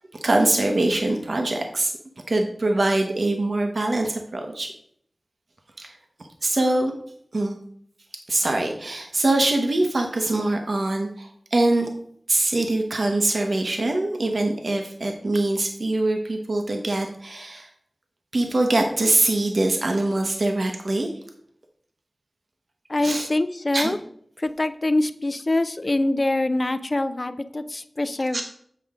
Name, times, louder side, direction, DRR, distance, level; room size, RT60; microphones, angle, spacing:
voice 1, 0.2-1.9 2.3-4.7 5.8-6.0 6.4-6.9 7.3-7.6 8.3-11.9 12.3-17.7 18.3-21.1 23.0-23.3 23.7-23.9 28.3-28.4, right 2 dB, 65° right, 3 dB, 0.9 m, -23 dB
voice 2, 22.9-24.0 24.4-28.4, left 2 dB, 45° left, 11 dB, 0.4 m, -24 dB
7.7 x 5.0 x 3.6 m, 0.66 s
wide cardioid pair, 60°, 0 cm